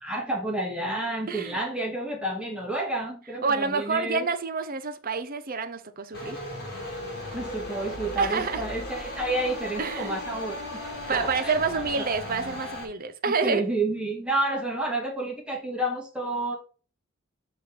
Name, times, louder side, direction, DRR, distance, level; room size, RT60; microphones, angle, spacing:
voice 1, 0.0-4.3 7.3-11.5 13.4-16.6, right 2 dB, 5° right, 2.0 m, -30 dB
voice 2, 1.3-1.6 3.4-6.4 8.2-8.6 9.8-10.2 11.1-13.6, right 4 dB, 45° right, 0.7 m, -28 dB
sound 1, 6.1-12.9, left 1 dB, 55° left, 2.2 m, -36 dB
6.5 x 3.7 x 5.8 m
head